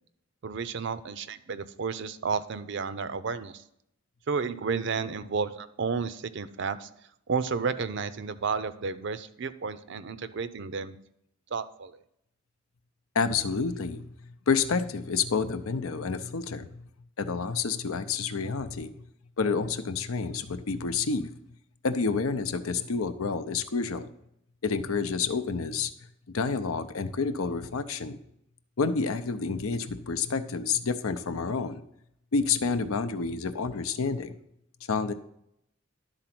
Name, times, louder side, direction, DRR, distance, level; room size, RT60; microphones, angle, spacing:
voice 1, 0.4-3.6 4.3-6.9 7.3-10.9 11.5-11.9, right 5 dB, 55° right, 14 dB, 0.5 m, -32 dB
voice 2, 13.1-16.9 17.2-18.9 19.4-21.3 21.8-24.1 24.6-25.9 26.3-28.2 28.8-31.8 32.3-34.3 34.9-35.1, left 5 dB, 85° left, 11 dB, 0.6 m, -29 dB
11.5 x 3.9 x 5.9 m, 0.77 s
head